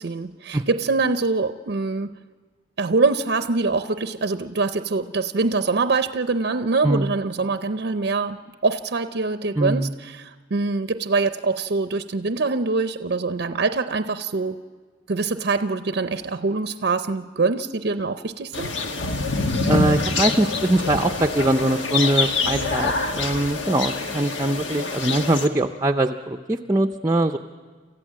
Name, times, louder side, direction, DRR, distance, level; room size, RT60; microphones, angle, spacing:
voice 1, 0.0-2.1 2.8-14.6 15.1-18.7, right 3 dB, 60° right, 10 dB, 0.6 m, -24 dB
voice 2, 9.6-9.9 19.7-27.4, right 1 dB, 20° right, 5 dB, 0.5 m, -22 dB
sound 1, 18.5-25.5, left 3 dB, 90° left, 1.4 m, -25 dB
28.0 x 14.5 x 7.5 m, 1.5 s
head